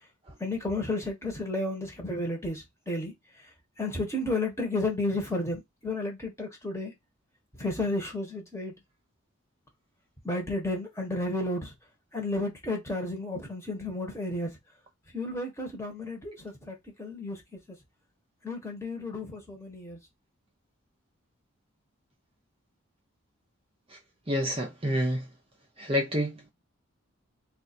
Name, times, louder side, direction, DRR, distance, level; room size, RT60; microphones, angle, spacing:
voice 1, 0.4-3.5 3.8-6.9 7.6-8.8 10.2-11.7 12.1-14.6 15.1-17.8 18.4-20.0, left 2 dB, 15° left, 1.2 m, -32 dB
voice 2, 24.3-25.3 25.8-26.5, equal, 25° right, 0.7 m, -28 dB
3.8 x 2.5 x 4.2 m
head